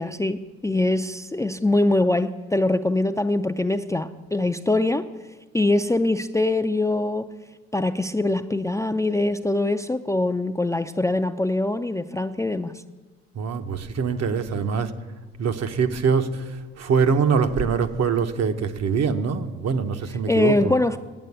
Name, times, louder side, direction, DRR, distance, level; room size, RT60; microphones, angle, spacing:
voice 1, 0.0-5.1 5.5-7.3 7.7-12.8 20.3-21.0, left 2 dB, 10° left, 9 dB, 0.3 m, -23 dB
voice 2, 13.4-14.9 15.4-16.4 16.8-20.5, right 5 dB, 60° right, 8 dB, 0.9 m, -23 dB
9.0 x 8.5 x 8.1 m, 1.3 s
cardioid pair, 90°, 30 cm